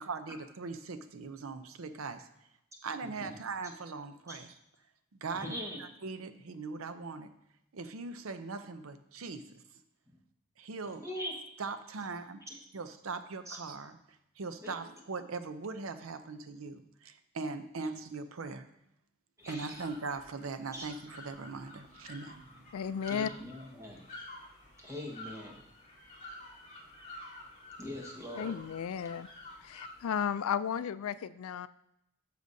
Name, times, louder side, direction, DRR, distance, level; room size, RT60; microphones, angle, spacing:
voice 1, 0.0-2.3 2.8-4.5 5.1-7.3 7.7-9.6 10.6-11.0 11.6-12.4 12.7-13.9 14.4-18.7 19.5-22.7, right 4 dB, 70° right, 10 dB, 0.6 m, -40 dB
voice 2, 5.3-5.8 11.0-11.3 12.5-12.6 13.5-13.6 14.6-14.8 19.4-19.8 20.7-20.9 23.1-24.0 24.8-25.6 27.8-28.6, left 1 dB, 15° right, -1 dB, 1.4 m, -41 dB
sound 1, 19.4-30.2, left 2 dB, 35° left, 3.0 m, -50 dB
voice 3, 22.7-23.3 28.4-29.3 29.6-31.7, left 7 dB, 75° left, 15 dB, 0.3 m, -34 dB
11.5 x 6.7 x 2.7 m, 0.78 s
head